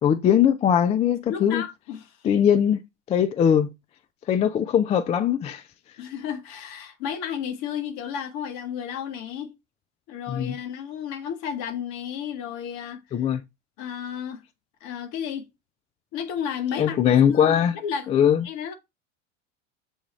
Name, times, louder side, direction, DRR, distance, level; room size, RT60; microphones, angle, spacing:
voice 1, 0.0-1.6 2.2-2.8 3.1-3.7 4.3-5.6 10.3-10.5 13.1-13.4 16.8-17.7 18.1-18.4, left 9 dB, 20° left, 0.3 m, -20 dB
voice 2, 1.3-2.2 6.0-9.5 10.1-13.2 13.8-14.4 14.8-15.5 16.1-18.1 18.4-18.7, left 8 dB, 55° left, 1.1 m, -32 dB
6.9 x 2.4 x 3.0 m
hypercardioid pair, 80°, 37 cm